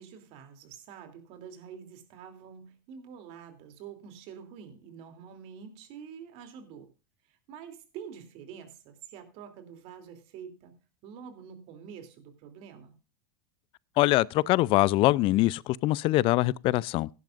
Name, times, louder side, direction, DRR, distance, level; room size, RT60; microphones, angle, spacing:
voice 1, 0.0-6.9 7.3-10.7 11.0-12.9, right 7 dB, 55° right, 2.9 m, -47 dB
voice 2, 14.0-17.1, left 18 dB, 45° left, 0.5 m, -23 dB
17.0 x 10.5 x 2.5 m
hypercardioid pair, 100°, 12 cm